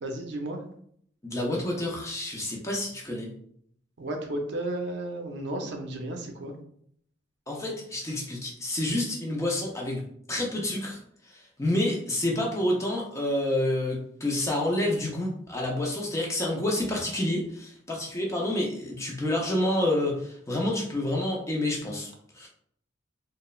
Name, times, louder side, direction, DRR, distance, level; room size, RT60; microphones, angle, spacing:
voice 1, 0.0-0.6 4.0-6.5, right 1 dB, 65° right, 3 dB, 0.5 m, -33 dB
voice 2, 1.2-3.3 7.5-10.0 10.3-22.5, left 1 dB, 15° left, -1 dB, 0.4 m, -29 dB
3.0 x 2.0 x 2.3 m, 0.65 s
head